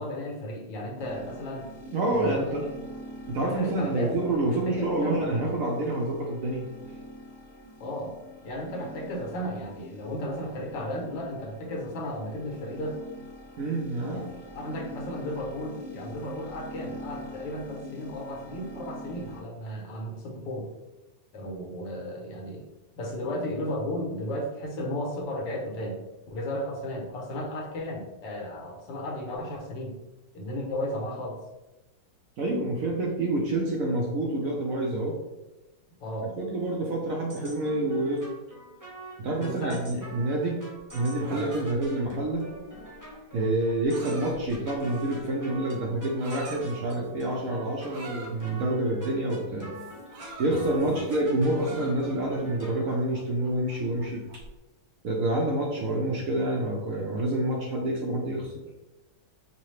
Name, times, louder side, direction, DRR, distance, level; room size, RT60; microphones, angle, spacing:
voice 1, 0.0-1.7 2.1-2.7 3.4-4.2 4.7-5.2 7.8-8.2 8.4-13.0 14.1-14.2 14.5-20.7 21.3-22.7 23.0-26.0 26.3-29.9 30.3-31.4 36.0-36.3 39.4-40.0 41.3-41.7 50.8-51.1, left 1 dB, 80° left, 0 dB, 1.6 m, -34 dB
sound 1, 1.0-19.4, equal, 60° left, 0.9 m, -45 dB
voice 2, 1.9-2.6 3.3-6.7 13.6-14.3 32.4-35.2 36.4-38.2 39.2-40.6 40.9-42.5 43.3-49.7 50.4-54.4 55.0-58.6, right 1 dB, 65° right, -2 dB, 0.9 m, -28 dB
sound 2, 37.3-53.0, right 1 dB, 30° right, 0.3 m, -44 dB
sound 3, 40.9-45.2 45.9-46.6 47.9-48.6 49.7-51.2 51.5-52.4 52.8-54.5, right 2 dB, 90° right, 1.5 m, -46 dB
5.6 x 2.1 x 3.1 m, 1.0 s
omnidirectional pair, 1.9 m